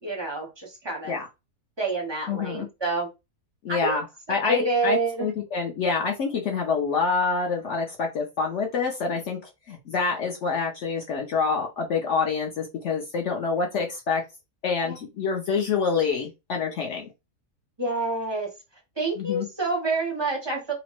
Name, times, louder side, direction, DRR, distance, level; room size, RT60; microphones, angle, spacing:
voice 1, 0.0-1.2 1.8-3.1 3.7-4.0 4.3-5.3 14.8-15.0 17.8-18.5 19.0-20.7, right 2 dB, 35° right, 0.4 m, -28 dB
voice 2, 2.3-2.7 3.6-4.0 4.3-9.4 9.7-14.2 14.6-17.1 19.2-19.5, left 5 dB, 65° left, 0.7 m, -26 dB
2.9 x 2.0 x 2.9 m
omnidirectional pair, 1.7 m